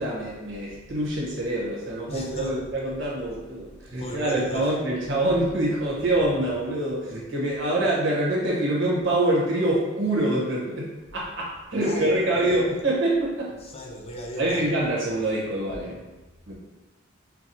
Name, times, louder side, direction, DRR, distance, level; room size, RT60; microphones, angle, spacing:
voice 1, 0.0-13.5 14.4-16.0 16.5-16.6, right 1 dB, 55° right, -5 dB, 1.1 m, -25 dB
voice 2, 2.1-2.6 3.9-4.7 11.7-12.6 13.6-14.7, equal, 25° left, -1 dB, 0.4 m, -36 dB
5.8 x 2.2 x 2.7 m, 1.1 s
head